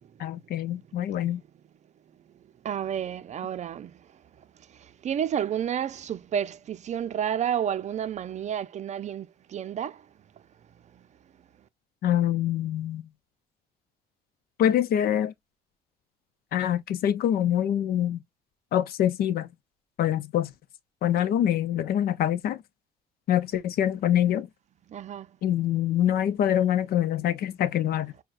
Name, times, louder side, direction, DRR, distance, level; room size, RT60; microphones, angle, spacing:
voice 1, 0.2-1.4 12.0-13.1 14.6-15.3 16.5-18.2 18.7-19.5 20.0-20.5 21.0-22.6 23.3-24.5 25.4-28.1, left 11 dB, 65° left, 0.6 m, -25 dB
voice 2, 2.6-4.1 4.7-10.1 10.9-11.1 24.9-25.3, right 9 dB, 45° right, 0.6 m, -31 dB
6.3 x 2.2 x 2.5 m
cardioid pair, 110°, 17 cm